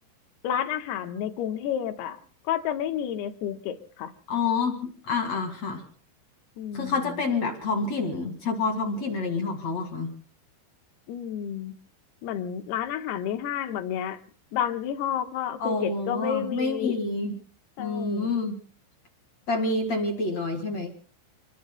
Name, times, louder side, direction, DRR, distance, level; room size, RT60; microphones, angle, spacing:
voice 1, 0.4-2.2 2.4-4.1 6.6-7.2 11.1-11.7 12.2-14.2 14.5-17.0 17.8-18.4, left 9 dB, 70° left, 7 dB, 2.9 m, -30 dB
voice 2, 4.3-5.8 6.7-10.1 15.6-17.3 17.8-18.5 19.5-20.9, left 3 dB, 50° left, 3 dB, 2.3 m, -28 dB
29.5 x 22.0 x 2.2 m, 0.43 s
omnidirectional pair, 5.4 m